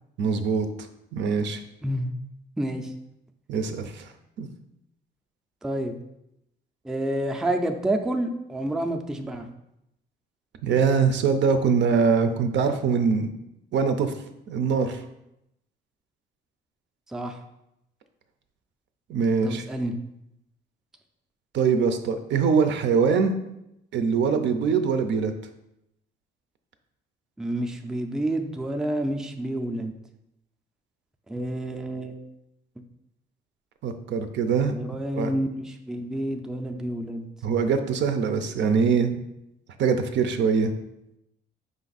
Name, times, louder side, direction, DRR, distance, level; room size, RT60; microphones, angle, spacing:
voice 1, 0.2-0.7 1.1-1.6 3.5-4.1 4.4-4.5 10.6-13.3 13.7-14.1 14.5-15.0 19.1-19.6 21.5-23.3 23.9-25.3 33.8-34.7 35.2-35.3 37.4-39.2 39.8-40.7, right 5 dB, 65° right, 7 dB, 0.5 m, -23 dB
voice 2, 1.8-2.1 2.6-2.9 5.6-6.0 6.8-9.5 17.1-17.4 19.4-20.0 27.4-29.9 31.3-32.2 34.7-37.3, right 1 dB, 5° right, 4 dB, 0.4 m, -29 dB
5.1 x 2.5 x 4.0 m, 0.84 s
cardioid pair, 90°, 20 cm